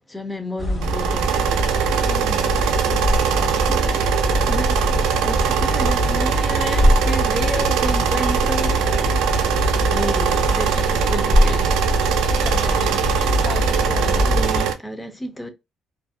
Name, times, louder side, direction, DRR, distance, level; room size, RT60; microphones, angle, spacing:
voice 1, 0.1-1.2 1.5-1.9 4.5-4.8 5.2-8.8 9.4-9.6 9.9-11.7 14.0-15.5, equal, 10° left, 0.6 m, -31 dB
sound 1, 0.6-14.6, equal, 35° left, 1.3 m, -22 dB
sound 2, 0.8-14.7, right 8 dB, 90° right, 0.4 m, -22 dB
voice 2, 2.0-3.9 8.5-8.8 9.6-10.1 12.3-14.1, left 5 dB, 65° left, 0.3 m, -37 dB
2.5 x 2.0 x 2.4 m
cardioid pair, 85°, 0 cm